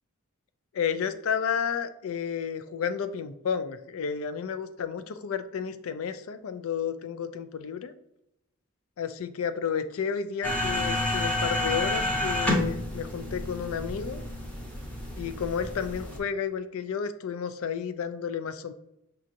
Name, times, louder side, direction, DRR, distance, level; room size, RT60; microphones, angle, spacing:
voice 1, 0.7-7.9 9.0-14.2 15.2-18.7, left 7 dB, 70° left, 11 dB, 0.4 m, -31 dB
sound 1, 10.4-16.2, left 1 dB, 5° left, 0.7 m, -30 dB
6.1 x 2.8 x 2.5 m, 0.83 s
head